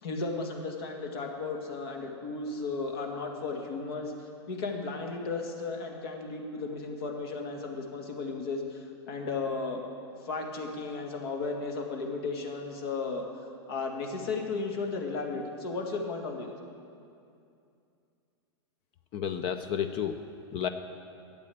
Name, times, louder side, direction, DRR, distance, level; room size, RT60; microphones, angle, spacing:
voice 1, 0.0-4.1 4.5-9.8 10.2-13.2 13.7-16.5, left 3 dB, 70° left, 2 dB, 2.2 m, -34 dB
voice 2, 19.1-20.7, left 8 dB, 40° left, 9 dB, 0.6 m, -32 dB
12.0 x 8.6 x 8.5 m, 2.5 s
hypercardioid pair, 130°, 14 cm